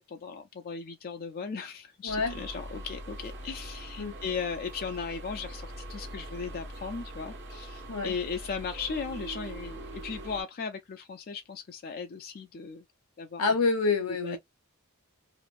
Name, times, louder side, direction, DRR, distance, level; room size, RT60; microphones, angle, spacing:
voice 1, 0.0-5.6 5.9-12.8 13.2-13.5 14.2-14.4, left 5 dB, 40° left, 0.4 m, -37 dB
voice 2, 2.0-2.3 4.0-4.1 7.9-8.2 13.4-14.4, left 4 dB, 70° left, 0.9 m, -27 dB
sound 1, 2.1-10.4, right 1 dB, 50° right, 1.2 m, -42 dB
3.1 x 2.5 x 2.5 m
head